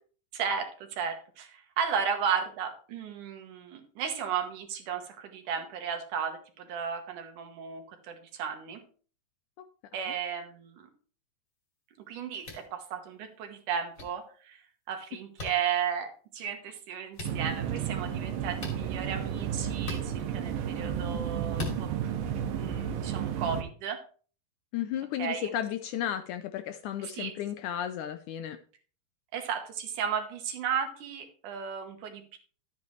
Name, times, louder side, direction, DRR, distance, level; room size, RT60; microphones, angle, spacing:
voice 1, 0.3-8.8 9.9-10.9 12.1-14.6 14.9-21.9 22.6-24.0 25.2-25.6 27.0-27.3 29.3-32.4, right 7 dB, 70° right, 6 dB, 2.6 m, -34 dB
sound 1, 12.4-12.7 13.9-14.0 15.4-15.5 17.1-17.3 18.6-18.8 19.8-20.0 21.5-21.8, left 2 dB, 35° left, 3.0 m, -37 dB
sound 2, 17.2-23.6, right 8 dB, 85° right, 2.7 m, -32 dB
voice 2, 24.7-28.6, left 10 dB, 80° left, 9 dB, 1.9 m, -33 dB
12.0 x 8.5 x 3.1 m, 0.41 s
omnidirectional pair, 4.0 m